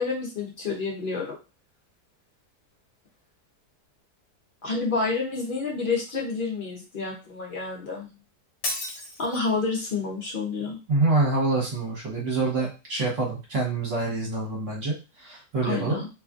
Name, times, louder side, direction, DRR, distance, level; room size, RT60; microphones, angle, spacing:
voice 1, 0.0-1.4 4.6-8.1 9.2-10.8 15.6-16.1, left 4 dB, 85° left, -3 dB, 0.4 m, -29 dB
Shatter, 8.6-9.6, left 2 dB, 70° left, 1.2 m, -33 dB
voice 2, 10.9-16.0, right 3 dB, 50° right, -3 dB, 1.3 m, -26 dB
2.8 x 2.4 x 2.4 m, 0.29 s
omnidirectional pair, 1.8 m